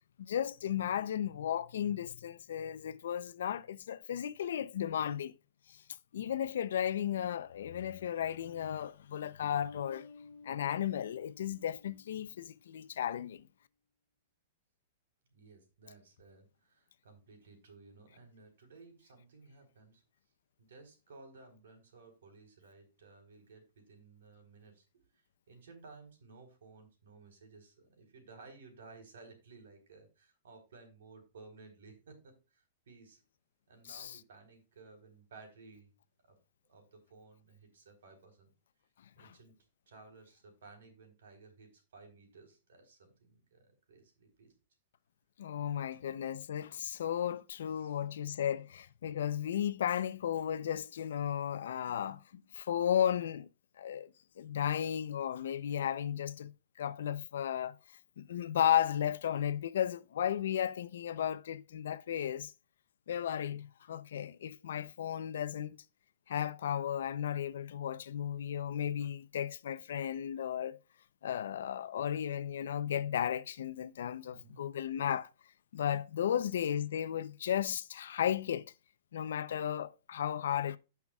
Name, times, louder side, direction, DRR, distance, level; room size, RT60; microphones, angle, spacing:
voice 1, 0.2-5.3 6.1-10.1 10.4-13.5 33.9-34.2 39.2-39.3 45.4-53.5 53.8-54.1 54.4-56.5 56.8-57.8 58.2-62.5 63.1-65.8 66.3-70.8 71.2-75.3 75.7-78.7 79.1-80.8, left 9 dB, 70° left, 0.6 m, -34 dB
sound 1, 9.4-12.8, left 4 dB, 40° left, 0.9 m, -53 dB
voice 2, 15.3-20.0 20.6-33.2 33.7-35.9 36.2-36.4 36.7-38.5 39.2-39.5 39.9-44.5 45.7-46.0 47.1-47.2 47.7-48.0 74.3-74.7, right 3 dB, 80° right, 3.8 m, -57 dB
16.5 x 5.8 x 2.4 m
supercardioid pair, 175°, 0 cm